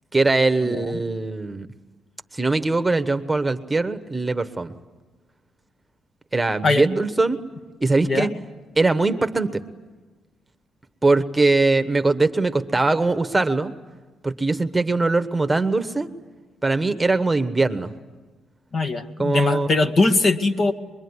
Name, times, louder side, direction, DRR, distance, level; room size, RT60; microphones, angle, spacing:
voice 1, 0.1-1.7 2.3-4.7 6.3-7.4 7.8-8.3 8.8-9.6 11.0-13.7 14.2-16.1 16.6-17.9 19.2-19.7, right 3 dB, 15° right, 10 dB, 1.2 m, -21 dB
voice 2, 18.7-20.7, left 3 dB, 45° left, 8 dB, 1.8 m, -21 dB
25.0 x 22.5 x 9.8 m, 1.3 s
cardioid pair, 90°, 0 cm